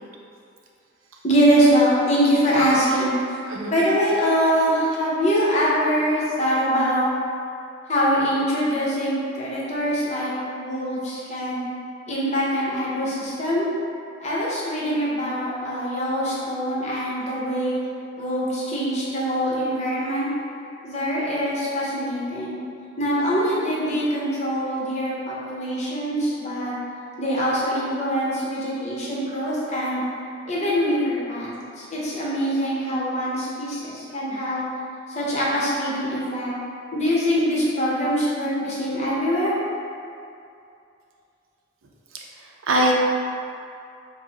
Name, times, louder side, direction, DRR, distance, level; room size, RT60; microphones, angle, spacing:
voice 1, 1.2-3.1 3.7-7.0 7.9-11.6 12.1-13.7 14.2-17.8 18.2-20.3 20.8-22.6 23.0-26.7 27.2-30.0 30.5-34.7 35.1-36.6 36.9-39.5, equal, 35° left, -7 dB, 0.8 m, -23 dB
voice 2, 42.4-43.0, right 1 dB, 75° right, -1 dB, 0.5 m, -22 dB
4.5 x 2.0 x 4.0 m, 2.5 s
head